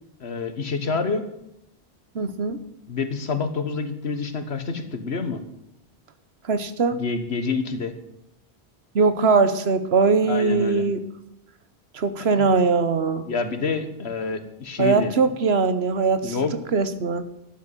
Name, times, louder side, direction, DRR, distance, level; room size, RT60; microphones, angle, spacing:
voice 1, 0.2-1.3 2.9-5.4 7.0-7.9 10.3-10.8 12.2-12.5 13.3-15.1 16.2-16.5, left 4 dB, 75° left, 9 dB, 1.6 m, -27 dB
voice 2, 2.1-2.6 6.5-7.0 8.9-11.0 11.9-13.3 14.8-16.4 16.7-17.3, right 4 dB, 70° right, 11 dB, 1.3 m, -21 dB
12.5 x 8.1 x 8.9 m, 0.82 s
omnidirectional pair, 1.1 m